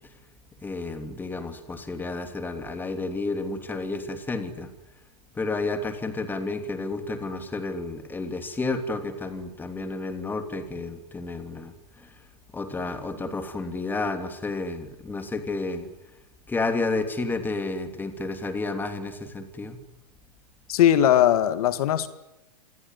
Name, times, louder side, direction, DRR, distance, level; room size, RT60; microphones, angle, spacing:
voice 1, 0.6-4.7 5.4-12.1 12.5-15.9 16.5-19.8, left 3 dB, 10° left, 7 dB, 2.9 m, -31 dB
voice 2, 20.7-22.1, left 11 dB, 65° left, 12 dB, 2.0 m, -19 dB
26.5 x 20.5 x 9.8 m, 0.96 s
hypercardioid pair, 145°, 20 cm